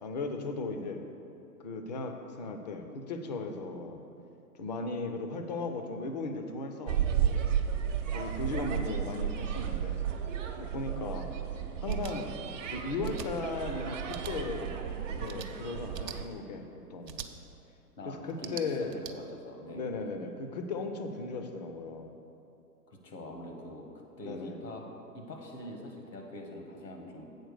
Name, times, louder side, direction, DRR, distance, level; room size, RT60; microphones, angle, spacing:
voice 1, 0.0-1.0 1.6-4.0 4.6-7.4 8.1-10.0 10.6-11.3 11.8-12.3 12.7-14.8 15.1-17.2 18.1-18.9 19.7-22.1 24.2-24.6, left 3 dB, 30° left, 5 dB, 0.4 m, -37 dB
sound 1, 6.9-16.3, right 9 dB, 50° right, 0.7 m, -33 dB
sound 2, 11.9-12.1 13.0-13.3 14.1-14.3 15.2-15.5 15.9-16.2 17.0-17.3 18.3-19.1, right 8 dB, 85° right, 0.7 m, -43 dB
voice 2, 18.0-20.0 22.9-23.9 24.2-24.9 25.1-27.3, left 1 dB, 80° left, 2 dB, 1.5 m, -44 dB
7.9 x 4.4 x 6.6 m, 2.7 s
figure-of-eight pair, 120°, 48 cm